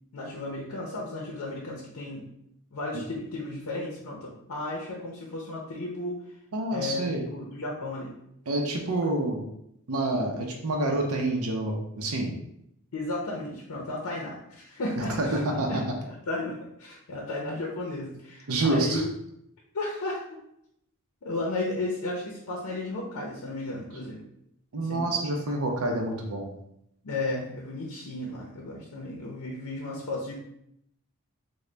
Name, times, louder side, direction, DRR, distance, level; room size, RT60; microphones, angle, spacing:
voice 1, 0.1-2.2 2.7-6.2 6.7-8.1 12.9-15.4 15.7-19.1 19.7-20.2 21.2-24.2 24.8-25.1 27.0-30.3, left 2 dB, 80° left, -2 dB, 0.6 m, -34 dB
voice 2, 6.5-7.2 8.5-9.4 9.9-12.3 15.0-15.8 18.5-19.0 24.7-26.5, right 2 dB, 75° right, 1 dB, 0.6 m, -27 dB
3.8 x 2.1 x 3.2 m, 0.77 s
head